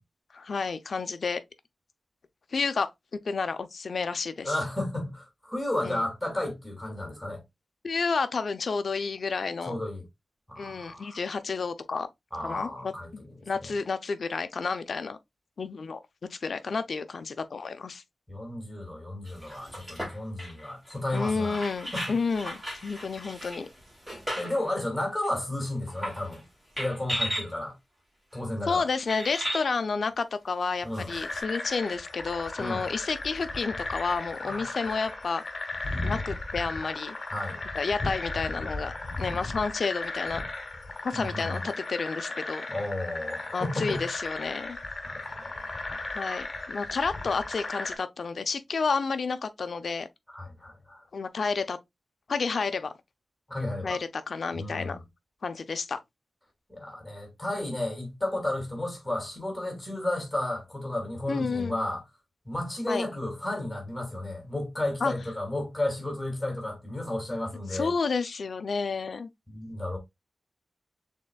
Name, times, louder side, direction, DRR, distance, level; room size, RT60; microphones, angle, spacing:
voice 1, 0.3-1.4 2.5-2.9 3.2-4.6 5.8-6.0 7.8-9.8 10.6-12.1 12.4-15.2 15.6-16.0 16.3-18.0 21.1-23.7 28.6-35.4 36.0-37.2 37.7-40.4 41.0-42.7 43.5-44.8 46.1-50.1 51.1-51.8 52.3-52.9 53.8-55.0 55.4-56.0 61.3-61.8 62.9-63.1 65.0-65.1 67.7-69.3, left 4 dB, 55° left, 0.5 m, -30 dB
voice 2, 4.4-7.4 9.6-10.0 10.5-11.2 12.3-13.1 13.6-13.7 18.3-21.7 21.9-22.0 24.4-26.4 26.8-27.8 28.3-28.9 30.8-31.1 32.6-32.8 34.4-34.7 37.3-37.6 41.1-41.6 42.7-44.0 45.0-46.4 50.3-51.0 53.5-54.0 54.5-55.0 56.7-62.0 62.5-67.9 69.5-70.0, left 1 dB, 5° left, 2.2 m, -33 dB
sound 1, 19.3-24.7 25.2-25.3 25.9-26.4 26.8-27.5 28.3-28.4 29.1-29.7 30.9-31.4, equal, 20° right, 3.0 m, -36 dB
sound 2, 31.1-48.0, left 2 dB, 35° left, 1.0 m, -36 dB
6.4 x 3.6 x 2.2 m
wide cardioid pair, 175°, 0 cm